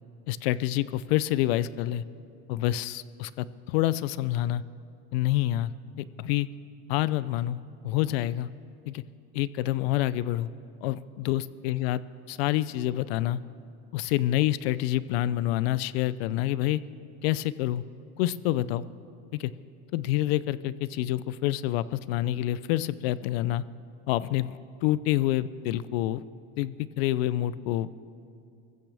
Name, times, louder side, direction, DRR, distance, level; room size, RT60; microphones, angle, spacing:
voice 1, 0.3-2.0 2.5-4.6 5.1-5.7 6.0-6.5 6.9-8.5 8.9-9.0 9.3-10.5 10.8-12.0 12.3-13.4 13.9-16.8 17.2-17.8 18.2-18.8 19.9-23.6 24.1-26.2 26.6-27.9, left 14 dB, 90° left, 17 dB, 0.6 m, -27 dB
24.5 x 15.0 x 3.4 m, 2.5 s
supercardioid pair, 125°, 30 cm